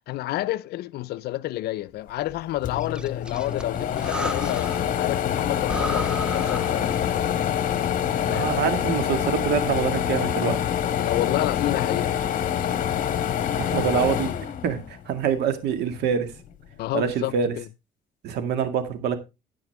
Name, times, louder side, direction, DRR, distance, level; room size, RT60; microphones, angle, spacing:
voice 1, 0.0-7.0 8.3-8.5 10.9-12.1 12.6-12.8 13.9-14.0 16.8-17.7, left 15 dB, 70° left, 0.5 m, -29 dB
sound 1, 2.3-2.4 2.6-15.2 15.7-16.8, left 9 dB, 55° left, 1.4 m, -26 dB
Breathing, 2.8-5.0 5.3-5.4 5.6-7.3, right 1 dB, 5° right, 0.6 m, -34 dB
voice 2, 8.3-10.6 13.6-14.3 14.6-16.3 16.9-17.5 18.2-19.2, right 7 dB, 80° right, 2.0 m, -25 dB
9.8 x 9.6 x 3.5 m
cardioid pair, 110°, 17 cm